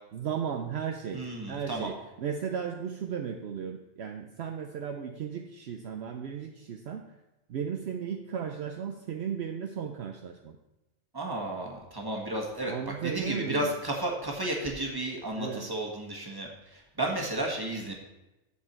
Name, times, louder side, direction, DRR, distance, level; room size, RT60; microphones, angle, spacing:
voice 1, 0.1-7.1 7.5-10.6 12.7-13.7 15.4-15.7, right 7 dB, 65° right, 4 dB, 0.9 m, -35 dB
voice 2, 1.1-1.9 11.1-12.7 13.0-17.9, right 1 dB, 20° right, 0 dB, 1.6 m, -33 dB
14.0 x 4.7 x 4.4 m, 1.0 s
omnidirectional pair, 1.2 m